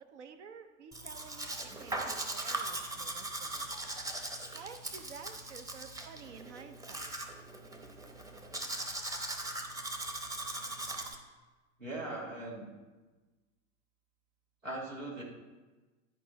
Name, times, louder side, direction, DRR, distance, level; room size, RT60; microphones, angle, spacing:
voice 1, 0.0-3.7 4.5-7.1, right 6 dB, 65° right, 7 dB, 0.8 m, -51 dB
Domestic sounds home sounds, 0.9-11.2, right 2 dB, 10° right, 0.8 m, -40 dB
voice 2, 11.8-12.7 14.6-15.2, right 2 dB, 90° right, -3 dB, 1.7 m, -39 dB
11.0 x 4.7 x 4.0 m, 1.2 s
figure-of-eight pair, 80°, 38 cm